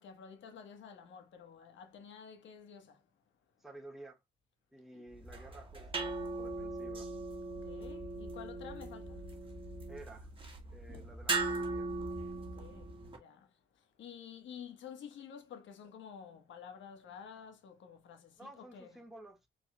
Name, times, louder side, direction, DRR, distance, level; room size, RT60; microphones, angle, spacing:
voice 1, 0.0-3.0 4.9-5.0 7.6-9.2 10.9-11.0 12.5-13.5 14.0-19.0, left 7 dB, 70° left, 1.3 m, -51 dB
voice 2, 3.6-4.2 4.7-7.1 9.9-10.3 10.7-11.9 18.4-19.5, right 1 dB, ahead, 1.6 m, -53 dB
sound 1, 5.1-13.2, right 3 dB, 25° right, 1.6 m, -39 dB
4.6 x 4.3 x 2.3 m
cardioid pair, 90°, 20 cm